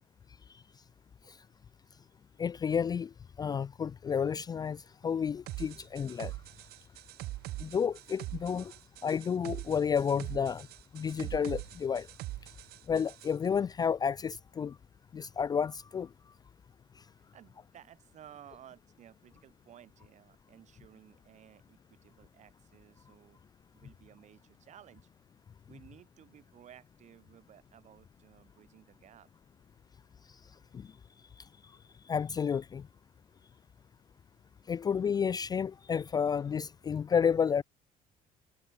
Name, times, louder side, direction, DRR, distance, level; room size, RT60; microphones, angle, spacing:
voice 1, 2.4-3.1 3.4-6.4 7.6-8.7 9.0-10.7 10.9-12.1 12.9-14.8 15.1-16.1 30.7-30.9 32.1-32.9 34.7-37.6, left 7 dB, 25° left, 0.4 m, -31 dB
sound 1, 5.5-13.3, right 17 dB, 80° right, 1.1 m, -43 dB
voice 2, 17.2-23.4 23.7-25.1 25.6-29.3, right 10 dB, 45° right, 6.5 m, -56 dB
cardioid pair, 165°, 16 cm